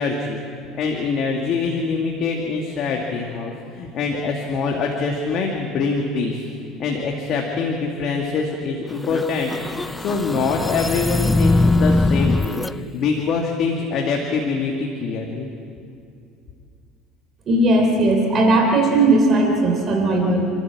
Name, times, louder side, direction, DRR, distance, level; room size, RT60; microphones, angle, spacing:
voice 1, 0.0-6.5 6.8-9.5 10.0-15.5, left 4 dB, 50° left, 0 dB, 2.2 m, -24 dB
sound 1, 9.0-12.7, left 2 dB, 10° left, 0.4 m, -21 dB
voice 2, 17.5-20.4, right 2 dB, 35° right, 2 dB, 3.4 m, -17 dB
29.5 x 13.0 x 7.5 m, 2.5 s
cardioid pair, 130°, 0 cm